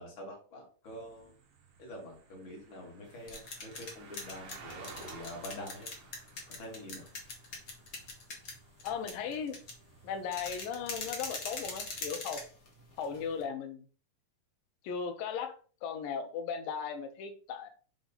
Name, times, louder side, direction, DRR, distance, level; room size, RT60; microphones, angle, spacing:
voice 1, 0.0-1.3 1.8-5.9 6.5-7.1, left 1 dB, 40° left, -1 dB, 2.3 m, -46 dB
sound 1, 0.9-12.1, right 5 dB, 60° right, 1.6 m, -55 dB
sound 2, 3.0-13.4, left 3 dB, 65° left, 0.8 m, -43 dB
voice 2, 8.8-9.6 10.0-12.4 13.0-13.8 14.8-15.6 15.8-17.7, left 6 dB, 85° left, 7 dB, 2.6 m, -37 dB
6.8 x 3.6 x 4.0 m, 0.40 s
omnidirectional pair, 3.9 m